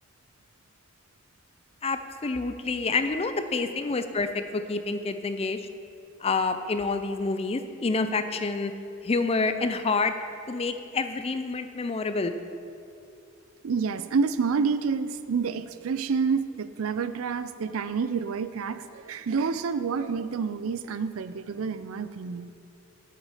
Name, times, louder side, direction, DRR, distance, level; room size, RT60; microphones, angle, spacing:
voice 1, 1.8-5.6 6.2-8.7 9.0-10.1 10.5-12.3, left 3 dB, 30° left, 9 dB, 0.5 m, -28 dB
voice 2, 13.6-22.5, right 5 dB, 85° right, 12 dB, 0.4 m, -28 dB
9.6 x 7.9 x 4.9 m, 2.5 s
head